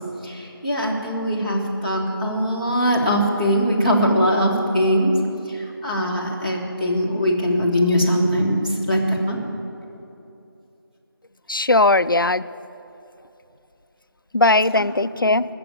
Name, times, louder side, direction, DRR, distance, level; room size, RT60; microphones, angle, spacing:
voice 1, 0.2-5.1 5.5-9.4 14.7-14.9 15.1-15.5, equal, 20° right, -5 dB, 1.6 m, -21 dB
voice 2, 11.5-12.4 14.3-15.4, left 2 dB, 65° left, 15 dB, 0.4 m, -18 dB
20.0 x 6.9 x 8.8 m, 2.8 s
figure-of-eight pair, 175°, 12 cm